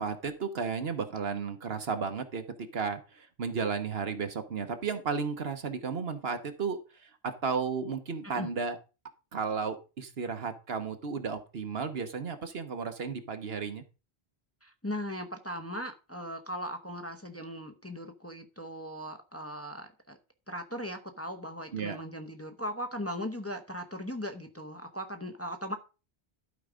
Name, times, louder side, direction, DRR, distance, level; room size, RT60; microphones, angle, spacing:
voice 1, 0.0-2.4 2.7-8.8 9.3-13.8 21.7-22.0, right 5 dB, 70° right, 8 dB, 1.4 m, -33 dB
voice 2, 14.6-20.2 20.5-25.8, equal, 15° left, 5 dB, 0.9 m, -38 dB
12.0 x 4.8 x 5.0 m, 0.31 s
omnidirectional pair, 1.1 m